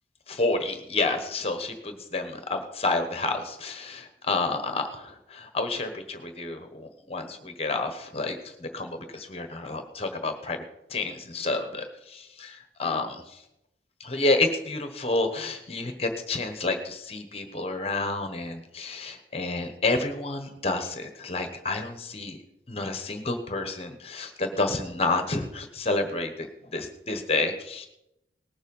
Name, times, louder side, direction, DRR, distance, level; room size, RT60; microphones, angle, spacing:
voice 1, 0.3-9.0 9.3-10.6 10.9-13.4 14.0-22.4 22.7-26.5 26.7-27.9, left 3 dB, 35° left, 7 dB, 1.1 m, -29 dB
19.0 x 7.3 x 5.4 m, 0.87 s
head